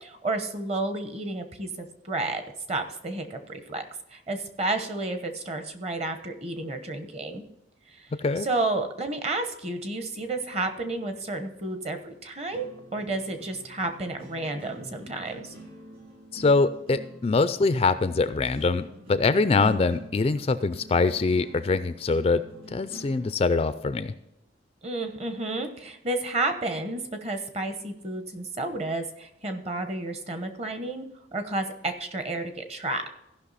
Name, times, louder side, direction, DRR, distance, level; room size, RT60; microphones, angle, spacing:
voice 1, 0.0-2.4 2.7-3.8 4.1-7.4 7.9-8.1 8.4-15.5 19.5-19.8 24.8-31.1 31.3-33.0, right 2 dB, 35° right, 7 dB, 1.0 m, -31 dB
sound 1, 10.1-24.1, right 1 dB, 55° right, 4.6 m, -48 dB
voice 2, 16.3-22.4 22.7-24.1, left 3 dB, 30° left, 13 dB, 0.3 m, -24 dB
15.0 x 5.7 x 4.1 m, 0.84 s
head